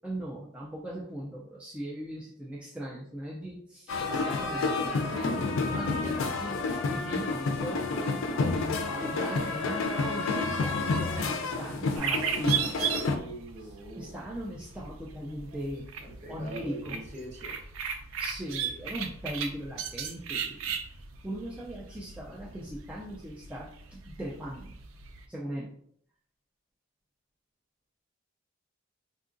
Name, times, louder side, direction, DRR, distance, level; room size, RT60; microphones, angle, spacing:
voice 1, 0.0-13.0 13.9-15.9 16.3-17.0 18.2-20.7 21.2-24.8 25.3-25.7, equal, 5° right, -5 dB, 0.3 m, -39 dB
sound 1, 3.9-13.2, left 3 dB, 85° left, 0.4 m, -30 dB
sound 2, 12.0-25.3, right 7 dB, 90° right, 0.4 m, -36 dB
voice 2, 12.9-14.2 16.0-17.6, right 2 dB, 40° right, -3 dB, 0.9 m, -43 dB
3.6 x 2.3 x 2.5 m, 0.65 s
head